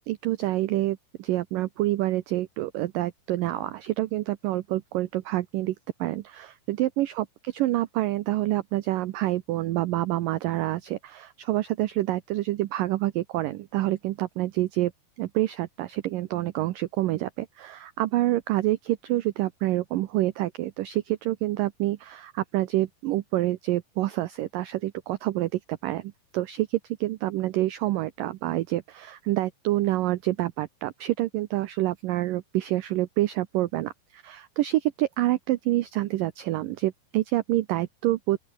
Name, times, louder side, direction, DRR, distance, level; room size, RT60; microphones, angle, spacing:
voice 1, 0.0-14.9 15.2-38.4, right 16 dB, 80° right, 2.0 m, -27 dB
open air
omnidirectional pair, 4.9 m